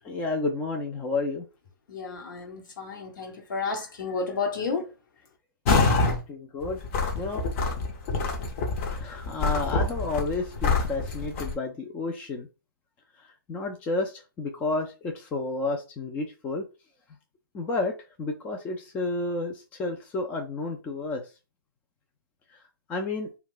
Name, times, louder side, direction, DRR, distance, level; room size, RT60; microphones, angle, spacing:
voice 1, 0.0-1.5 5.7-6.8 7.1-7.4 8.9-12.5 13.2-16.6 17.5-21.2 22.5-22.6 22.9-23.3, left 3 dB, 10° left, 0.3 m, -31 dB
voice 2, 1.9-4.9, left 4 dB, 60° left, 1.0 m, -31 dB
sound 1, 5.7-6.2 6.6-11.5, left 3 dB, 35° left, 0.7 m, -26 dB
2.4 x 2.2 x 3.7 m
figure-of-eight pair, 135°, 12 cm